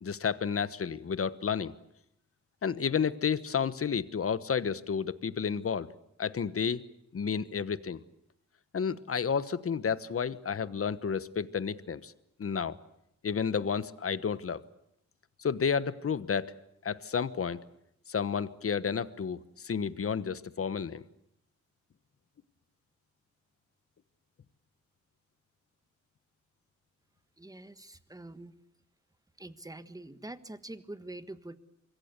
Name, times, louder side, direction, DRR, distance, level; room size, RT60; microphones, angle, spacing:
voice 1, 0.0-1.7 2.6-5.9 6.2-6.8 7.1-8.0 8.7-12.1 12.4-12.8 13.2-14.6 15.4-16.5 16.8-17.6 18.1-21.0, left 6 dB, 50° left, 15 dB, 1.2 m, -31 dB
voice 2, 27.4-28.6 29.4-31.6, right 2 dB, 10° right, 11 dB, 1.4 m, -45 dB
25.5 x 22.0 x 8.1 m, 0.77 s
cardioid pair, 90°, 30 cm